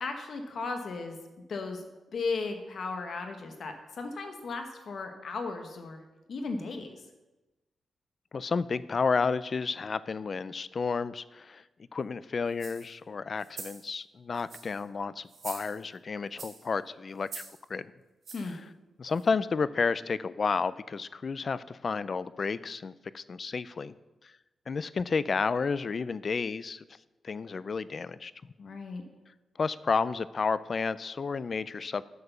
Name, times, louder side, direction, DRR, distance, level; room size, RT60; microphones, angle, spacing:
voice 1, 0.0-1.2 1.5-1.8 2.1-6.0 6.3-6.9 18.3-18.6 28.6-29.0, left 4 dB, 60° left, 5 dB, 1.2 m, -35 dB
voice 2, 8.3-11.6 11.9-17.4 17.7-17.9 18.5-18.6 19.0-23.9 24.2-24.3 24.7-26.8 27.2-28.3 29.6-32.0, left 5 dB, 45° left, 17 dB, 0.4 m, -31 dB
sound 1, 12.5-12.9 13.4-13.8 14.3-14.8 15.3-16.0 16.4-16.7 17.2-17.6 18.2-18.6 19.1-19.2, right 4 dB, 55° right, 2.1 m, -44 dB
8.4 x 6.9 x 6.6 m, 1.1 s
wide cardioid pair, 110°, 0 cm